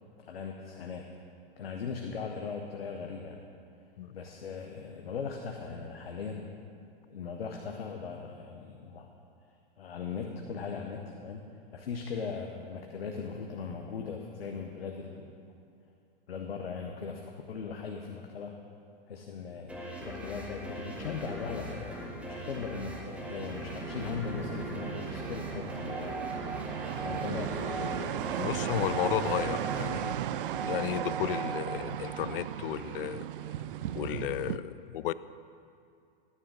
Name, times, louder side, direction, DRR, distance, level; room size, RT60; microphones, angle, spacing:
voice 1, 0.2-1.1 1.6-3.5 4.1-6.5 7.1-9.1 9.8-11.4 11.7-15.3 16.3-18.5 19.1-26.1 27.0-28.1, left 5 dB, 85° left, 2 dB, 1.0 m, -39 dB
sound 1, 19.7-31.0, equal, 5° right, 1.3 m, -41 dB
sound 2, 21.2-34.6, right 11 dB, 65° right, 0.5 m, -37 dB
sound 3, 25.9-31.8, right 5 dB, 90° right, 1.3 m, -40 dB
voice 2, 28.4-30.1 30.6-33.3 33.9-35.1, left 12 dB, 70° left, 16 dB, 0.5 m, -33 dB
12.5 x 9.9 x 3.9 m, 2.5 s
hypercardioid pair, 120°, 29 cm